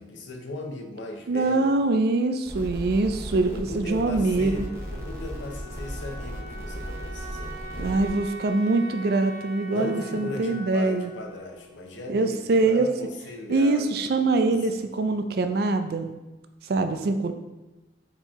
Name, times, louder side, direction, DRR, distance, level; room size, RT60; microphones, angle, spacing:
voice 1, 0.0-1.7 3.5-8.0 9.7-13.9 14.4-14.6, left 2 dB, 85° left, 2 dB, 0.7 m, -37 dB
voice 2, 1.3-4.7 7.8-11.1 12.1-12.9 13.5-16.1 16.7-17.3, right 3 dB, 55° right, 7 dB, 0.4 m, -24 dB
sound 1, 2.5-8.1, equal, 15° right, 0.6 m, -36 dB
Wind instrument woodwind instrument, 3.8-12.5, right 1 dB, 25° left, 1.0 m, -43 dB
4.4 x 2.9 x 3.5 m, 1.1 s
head